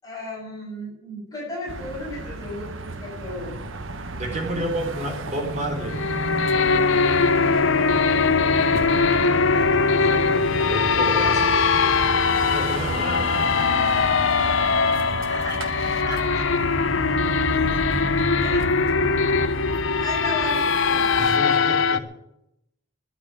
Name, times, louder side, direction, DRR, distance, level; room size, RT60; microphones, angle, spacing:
voice 1, 0.0-3.6 7.8-10.2 14.9-15.7 16.0-16.5 18.4-18.6 20.0-21.2, left 1 dB, 20° left, -4 dB, 6.9 m, -36 dB
sound 1, 1.7-21.4, right 2 dB, 65° right, 1.2 m, -33 dB
voice 2, 4.1-6.1 10.6-11.6 11.9-13.9 21.2-22.1, equal, 35° right, 1 dB, 4.4 m, -31 dB
sound 2, 5.8-22.0, left 5 dB, 65° left, 0.7 m, -21 dB
12.5 x 10.5 x 9.2 m, 0.83 s
head